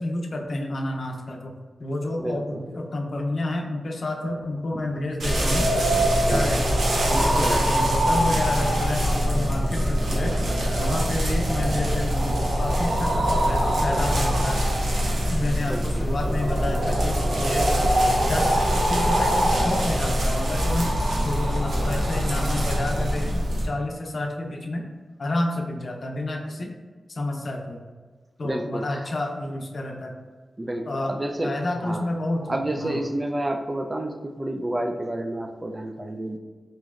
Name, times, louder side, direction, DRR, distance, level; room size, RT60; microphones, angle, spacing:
voice 1, 0.0-1.5 1.8-5.7 6.1-6.6 7.0-10.4 10.8-14.7 15.3-17.7 18.2-20.9 21.2-24.9 25.2-26.7 27.1-27.8 28.4-30.2 30.9-31.2 31.4-33.0, left 1 dB, 55° left, 1 dB, 0.5 m, -29 dB
voice 2, 2.2-2.6 6.2-6.6 7.4-7.8 15.7-16.1 28.4-29.1 30.6-32.1 32.5-36.4, right 1 dB, 25° right, 5 dB, 0.4 m, -30 dB
sound 1, 5.2-23.7, equal, 85° right, 0.8 m, -23 dB
4.1 x 3.0 x 2.4 m, 1.5 s
cardioid pair, 70°, 0 cm